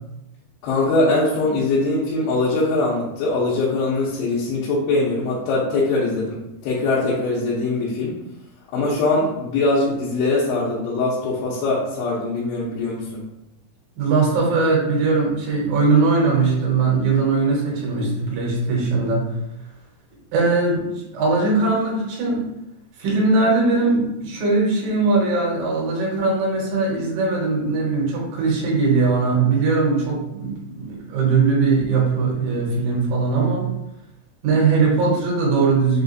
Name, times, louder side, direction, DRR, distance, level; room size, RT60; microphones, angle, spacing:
voice 1, 0.6-8.2 8.7-13.3, left 2 dB, 85° left, -7 dB, 2.8 m, -22 dB
voice 2, 14.0-19.4 20.3-22.4 23.0-33.7 34.4-36.0, right 3 dB, 65° right, -4 dB, 2.7 m, -20 dB
6.5 x 2.4 x 2.6 m, 0.89 s
omnidirectional pair, 4.6 m